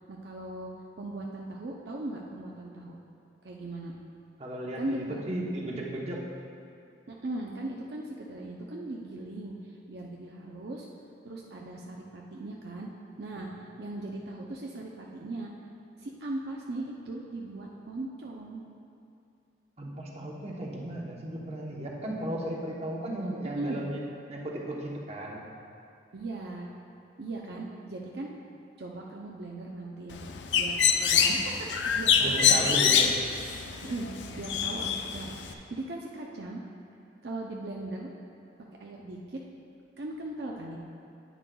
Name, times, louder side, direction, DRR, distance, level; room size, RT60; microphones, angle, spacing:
voice 1, 0.1-0.7 1.0-3.0 3.4-3.9 4.8-5.2 7.1-10.9 11.2-12.9 13.2-15.5 16.0-18.6 23.6-23.8 26.1-26.7 27.2-28.3 28.8-30.2 30.5-32.9 33.8-36.6 37.2-38.1 38.8-39.4 40.0-40.8, right 2 dB, 65° right, -2 dB, 0.6 m, -38 dB
voice 2, 4.4-6.2 19.8-24.0 24.3-25.4 32.2-33.1, right 1 dB, 35° right, -2 dB, 0.9 m, -35 dB
Bird, 30.1-35.5, left 7 dB, 85° left, 0.5 m, -25 dB
9.9 x 9.5 x 2.3 m, 2.6 s
head